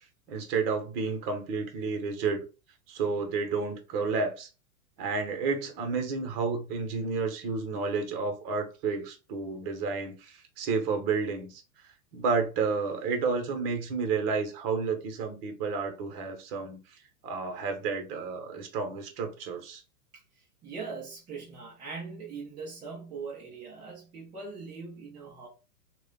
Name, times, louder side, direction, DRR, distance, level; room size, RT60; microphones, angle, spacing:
voice 1, 0.3-2.4 2.9-4.5 5.0-11.6 12.1-16.8 17.2-19.8, right 4 dB, 40° right, 0.8 m, -31 dB
voice 2, 20.6-25.5, right 4 dB, 10° right, 0.4 m, -41 dB
2.4 x 2.2 x 3.6 m
hypercardioid pair, 105°, 45 cm